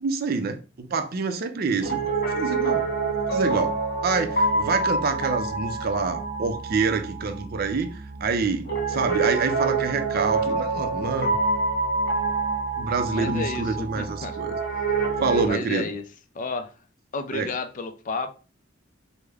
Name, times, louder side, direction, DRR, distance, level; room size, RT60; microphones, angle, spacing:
voice 1, 0.0-2.0 2.3-2.9 3.3-3.7 4.0-11.4 12.8-14.6 15.2-15.9 17.3-17.5, right 4 dB, 50° right, 0.5 m, -27 dB
Piano, 1.8-15.5, right 3 dB, 55° left, 0.9 m, -27 dB
voice 2, 13.1-14.4 15.4-16.0 16.3-16.8 17.1-18.3, left 3 dB, 40° left, 0.4 m, -31 dB
3.4 x 2.1 x 3.4 m
head